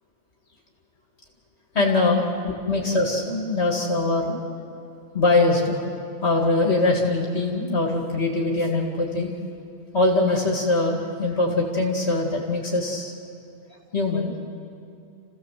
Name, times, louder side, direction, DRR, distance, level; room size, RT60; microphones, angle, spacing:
voice 1, 1.7-4.4 5.1-5.8 6.2-9.3 9.9-13.1 13.9-14.3, left 2 dB, 65° left, 0 dB, 2.6 m, -22 dB
29.0 x 16.0 x 7.6 m, 2.7 s
omnidirectional pair, 1.2 m